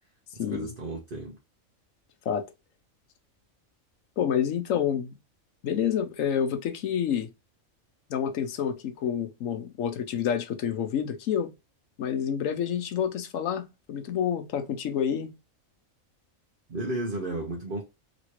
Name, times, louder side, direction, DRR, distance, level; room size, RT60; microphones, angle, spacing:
voice 1, 0.4-1.4 16.7-17.8, right 2 dB, 50° right, 0.9 m, -33 dB
voice 2, 4.2-5.1 5.6-7.3 8.1-11.5 12.0-15.3, left 8 dB, 75° left, 1.1 m, -28 dB
3.1 x 3.0 x 2.9 m
omnidirectional pair, 1.4 m